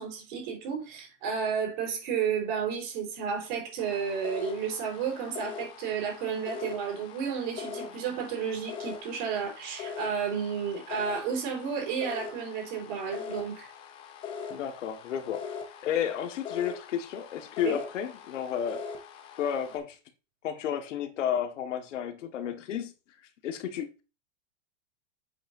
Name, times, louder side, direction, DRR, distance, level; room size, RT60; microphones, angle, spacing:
voice 1, 0.0-13.7 17.6-17.8, right 7 dB, 40° right, 4.5 m, -32 dB
sound 1, 3.8-19.8, left 6 dB, 15° left, 0.6 m, -42 dB
voice 2, 14.5-15.6 15.8-18.8 19.4-20.0 20.4-22.9 23.4-24.0, left 9 dB, 85° left, 1.7 m, -32 dB
8.4 x 8.1 x 2.7 m
supercardioid pair, 180°, 36 cm